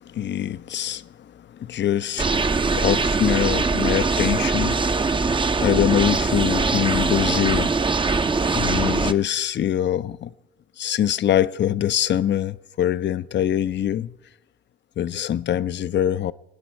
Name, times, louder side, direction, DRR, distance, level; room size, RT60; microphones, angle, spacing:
voice 1, 0.1-1.1 1.5-8.0 8.5-10.3 10.8-14.1 15.0-16.3, left 10 dB, 40° left, 0.5 m, -24 dB
sound 1, 2.2-9.1, right 4 dB, 15° right, 0.6 m, -22 dB
25.0 x 9.3 x 4.4 m
hypercardioid pair, 60°, 30 cm